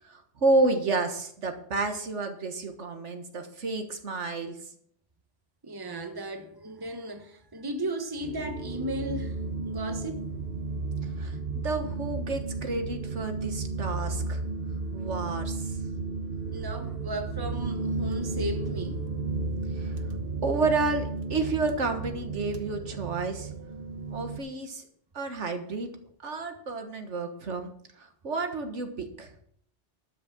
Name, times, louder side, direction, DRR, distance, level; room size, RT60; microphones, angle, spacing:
voice 1, 0.1-4.6 11.2-14.4 14.9-15.8 19.8-20.0 20.4-23.5 24.1-24.8 25.1-25.9 26.2-27.7 28.0-29.3, right 3 dB, 85° right, 1.8 m, -30 dB
voice 2, 5.6-10.2 16.5-19.0, right 1 dB, 20° right, 1.2 m, -35 dB
sound 1, 8.2-24.4, right 3 dB, 55° right, 1.2 m, -33 dB
12.5 x 6.4 x 7.3 m
omnidirectional pair, 1.2 m